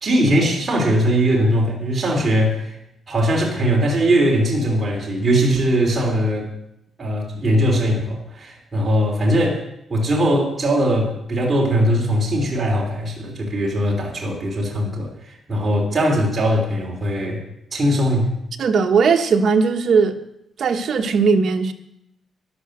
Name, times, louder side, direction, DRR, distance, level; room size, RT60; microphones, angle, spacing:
voice 1, 0.0-2.8 3.1-6.5 7.0-9.6 9.9-17.4 17.7-18.3, equal, 25° right, -2 dB, 3.2 m, -20 dB
voice 2, 18.6-20.2 20.6-21.7, right 5 dB, 50° right, 3 dB, 1.2 m, -18 dB
13.0 x 11.5 x 6.6 m, 0.80 s
wide cardioid pair, 170°, 0 cm